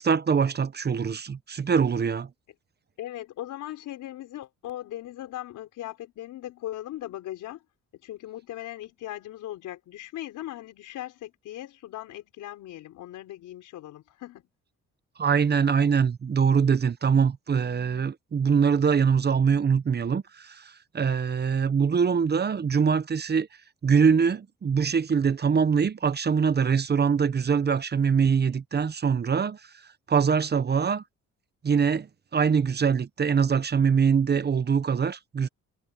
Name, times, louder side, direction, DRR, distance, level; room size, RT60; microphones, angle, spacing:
voice 1, 0.0-2.3 15.2-23.5 23.8-29.6 30.1-31.0 31.6-32.1 32.3-35.5, right 6 dB, 35° right, 0.9 m, -23 dB
voice 2, 3.0-7.6 8.0-14.4, left 13 dB, 85° left, 4.5 m, -39 dB
cardioid pair, 90°, 30 cm